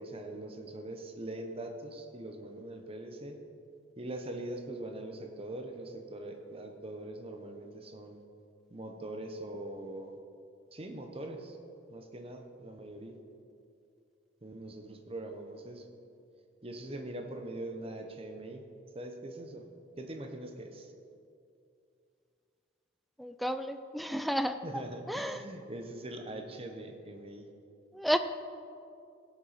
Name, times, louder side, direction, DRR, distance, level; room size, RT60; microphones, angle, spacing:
voice 1, 0.0-3.4 4.0-8.2 8.7-10.2 10.7-11.6 11.9-13.2 14.4-15.9 16.6-18.6 18.9-19.7 20.0-20.9 24.6-27.5, right 1 dB, 30° right, 4 dB, 1.0 m, -42 dB
voice 2, 23.2-24.6 25.1-25.4 27.9-28.2, equal, ahead, 9 dB, 0.3 m, -31 dB
17.0 x 7.2 x 4.2 m, 2.5 s
head